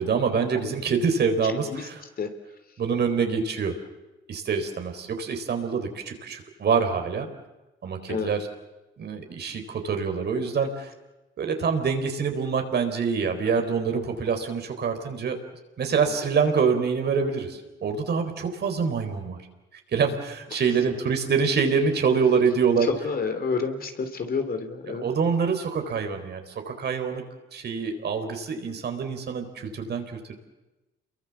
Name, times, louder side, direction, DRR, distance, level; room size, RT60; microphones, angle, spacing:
voice 1, 0.0-2.0 2.8-3.7 4.3-7.3 7.8-8.5 9.0-10.9 11.4-15.4 15.8-19.4 19.9-22.9 25.0-27.2 27.5-30.3, right 5 dB, 55° right, 5 dB, 4.4 m, -25 dB
voice 2, 1.4-1.9 2.2-2.3 8.1-8.3 20.5-20.6 22.9-25.1, left 5 dB, 50° left, 7 dB, 3.4 m, -29 dB
28.5 x 23.0 x 7.3 m, 1.1 s
cardioid pair, 90°, 20 cm